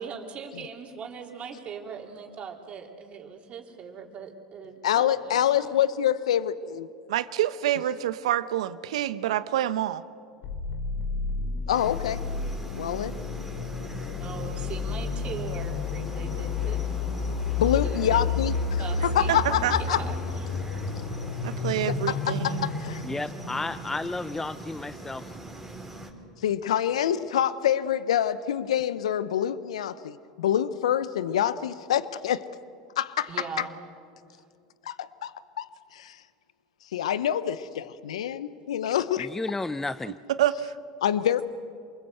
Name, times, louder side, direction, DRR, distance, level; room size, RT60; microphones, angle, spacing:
voice 1, 0.0-5.7 14.2-17.3 17.7-18.5 18.8-19.4 19.7-20.5 33.3-33.8, right 6 dB, 40° right, 3.9 m, -40 dB
voice 2, 4.8-6.9 11.7-12.2 12.8-13.2 17.6-20.0 21.8-22.4 22.6-23.0 26.4-32.4 33.0-33.7 34.9-35.7 35.9-36.2 36.9-39.3 41.0-41.4, left 10 dB, 85° left, 0.8 m, -26 dB
voice 3, 7.1-10.0 19.3-19.7 21.4-22.7 40.3-40.8, right 12 dB, 75° right, 1.0 m, -27 dB
sound 1, 10.4-24.2, left 4 dB, 60° left, 2.6 m, -31 dB
sound 2, 11.7-26.1, right 2 dB, 5° right, 4.4 m, -42 dB
voice 4, 23.0-25.3 39.2-40.1, left 2 dB, 10° left, 0.6 m, -32 dB
28.0 x 21.0 x 8.0 m
hypercardioid pair, 90°, 3 cm